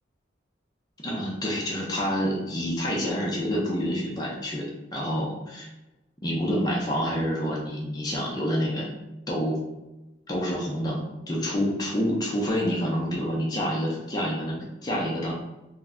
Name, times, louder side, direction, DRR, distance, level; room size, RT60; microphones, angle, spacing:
voice 1, 1.0-4.6 4.9-5.7 6.2-8.9 9.3-9.6 10.3-15.3, equal, 20° left, -4 dB, 0.5 m, -28 dB
2.3 x 2.1 x 3.5 m, 1.0 s
head